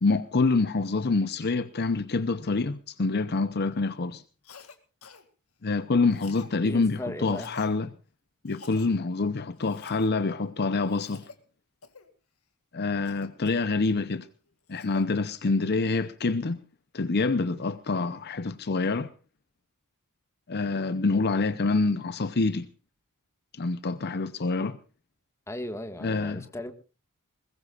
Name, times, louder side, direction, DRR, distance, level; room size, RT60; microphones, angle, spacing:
voice 1, 0.0-4.2 5.6-7.9 8.4-11.2 12.7-14.3 14.7-16.6 16.9-19.1 20.5-22.7 23.5-24.8 26.0-26.4, left 3 dB, 45° left, 0.7 m, -26 dB
Cough, 4.4-4.8 5.0-5.2 6.1-6.5 7.2-7.7 8.5-8.9 9.6-10.1 10.8-11.4 11.8-12.1 13.0-14.0 14.5-15.1, left 4 dB, 75° left, 2.2 m, -48 dB
voice 2, 6.6-7.5 25.5-26.7, left 1 dB, 15° left, 1.7 m, -37 dB
21.0 x 21.0 x 2.4 m
head